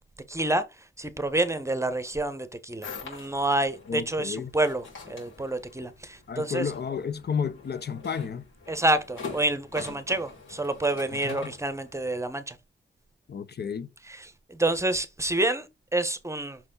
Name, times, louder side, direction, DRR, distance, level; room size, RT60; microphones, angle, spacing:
voice 1, 0.3-0.6 1.0-6.7 8.7-12.6 14.0-15.7 15.9-16.6, right 2 dB, 15° right, 0.9 m, -28 dB
sound 1, 2.8-12.2, left 4 dB, 80° left, 4.3 m, -44 dB
voice 2, 3.9-4.5 6.3-8.4 11.2-11.5 13.3-13.9, left 6 dB, 55° left, 0.7 m, -32 dB
5.9 x 4.2 x 3.8 m
cardioid pair, 90°, 20 cm